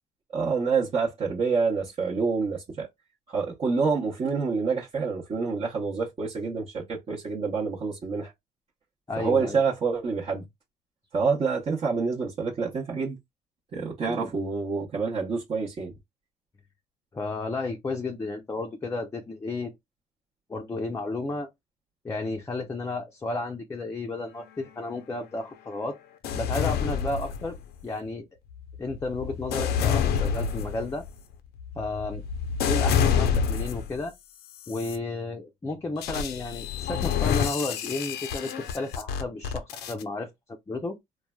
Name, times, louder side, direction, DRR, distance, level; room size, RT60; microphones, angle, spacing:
voice 1, 0.3-2.9 3.3-8.3 9.2-10.4 11.1-13.2 13.7-15.9, right 5 dB, 35° right, 0.8 m, -27 dB
voice 2, 9.1-9.6 14.0-14.5 17.1-19.7 20.5-21.5 22.0-26.0 26.3-27.6 27.8-28.3 28.8-31.1 31.7-32.2 32.7-34.1 34.7-40.3 40.7-41.0, left 2 dB, 15° left, 0.5 m, -32 dB
sound 1, 26.2-27.8 28.5-34.0 34.6-35.0 36.0-40.0, left 7 dB, 70° left, 0.5 m, -28 dB
3.1 x 2.2 x 2.2 m
cardioid pair, 110°, 17 cm